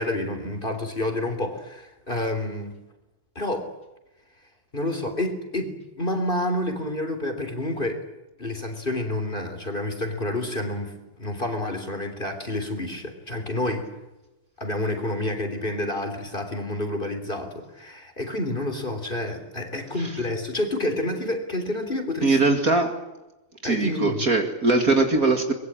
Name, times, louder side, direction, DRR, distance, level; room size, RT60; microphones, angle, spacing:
voice 1, 0.0-2.8 3.4-3.7 4.7-8.0 8.4-13.9 14.6-22.6 23.6-24.2, left 1 dB, 25° left, 6 dB, 3.6 m, -29 dB
voice 2, 22.2-23.0 23.6-25.5, right 3 dB, 40° right, 4 dB, 2.4 m, -21 dB
24.0 x 22.0 x 8.9 m, 1.0 s
omnidirectional pair, 2.3 m